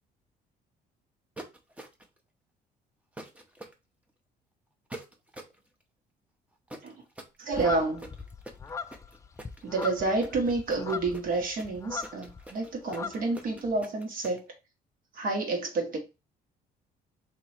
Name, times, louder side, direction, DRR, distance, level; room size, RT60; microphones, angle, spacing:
sound 1, 1.4-2.2 3.2-3.7 4.9-5.6 6.7-14.4, right 2 dB, 10° right, 0.7 m, -45 dB
voice 1, 7.4-8.1 9.6-14.5 15.1-16.0, right 3 dB, 55° right, 1.5 m, -29 dB
sound 2, 7.5-12.5 12.7-13.7, left 5 dB, 20° left, 0.3 m, -39 dB
3.1 x 2.9 x 4.3 m
cardioid pair, 110°, 17 cm